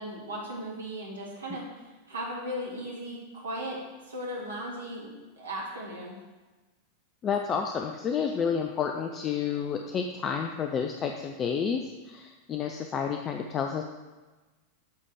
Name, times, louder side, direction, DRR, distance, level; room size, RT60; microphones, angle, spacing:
voice 1, 0.0-6.2, equal, 75° right, -4 dB, 2.2 m, -37 dB
voice 2, 7.2-11.8 12.1-13.8, left 7 dB, 25° left, 4 dB, 0.5 m, -30 dB
8.4 x 3.6 x 6.6 m, 1.2 s
figure-of-eight pair, 90°, 0 cm